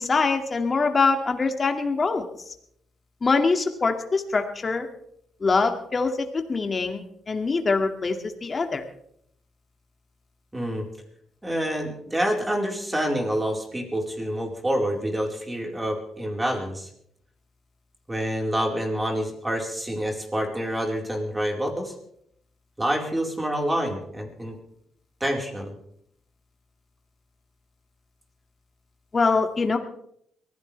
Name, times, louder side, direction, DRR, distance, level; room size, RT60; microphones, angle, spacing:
voice 1, 0.0-2.5 3.2-4.9 5.4-8.8 29.1-29.8, left 4 dB, 35° left, 5 dB, 2.3 m, -24 dB
voice 2, 10.5-10.8 11.4-16.9 18.1-21.9 22.8-24.6 25.2-25.7, equal, 15° right, 1 dB, 4.5 m, -27 dB
23.0 x 16.0 x 3.4 m, 0.70 s
cardioid pair, 90°, 0 cm